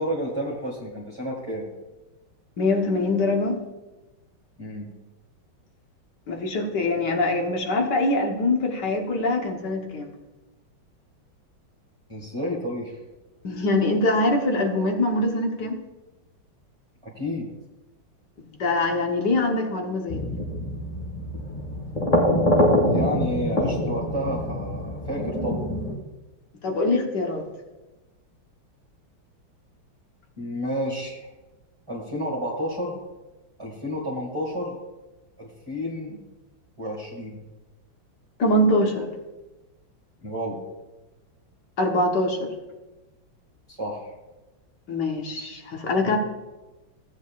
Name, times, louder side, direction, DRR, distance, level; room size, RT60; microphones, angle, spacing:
voice 1, 0.0-1.7 4.6-4.9 12.1-13.0 17.0-17.5 22.9-25.6 30.4-31.3 31.9-33.0 33.6-34.8 35.4-36.2 36.8-37.4 40.2-40.6 43.7-44.1, equal, 15° right, -4 dB, 1.8 m, -30 dB
voice 2, 2.6-3.6 6.3-10.1 13.4-15.8 18.4-20.4 26.6-27.5 38.4-39.1 41.8-42.5 44.9-46.2, left 2 dB, 60° left, 2 dB, 1.7 m, -23 dB
sound 1, 20.1-25.9, equal, 25° left, 1.2 m, -24 dB
16.5 x 8.4 x 2.5 m, 1.1 s
omnidirectional pair, 2.3 m